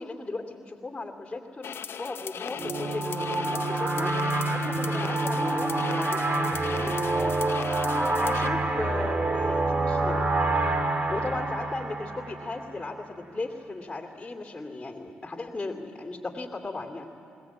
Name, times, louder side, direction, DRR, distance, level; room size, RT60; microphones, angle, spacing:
voice 1, 0.0-4.1 4.5-7.4 8.2-10.2 11.1-17.1, left 3 dB, 20° left, 1 dB, 2.6 m, -36 dB
sound 1, 1.6-8.5, left 7 dB, 60° left, 0.8 m, -38 dB
sound 2, 2.6-12.9, right 2 dB, 35° right, 1.7 m, -27 dB
21.0 x 19.5 x 8.6 m, 2.7 s
supercardioid pair, 50°, 4 cm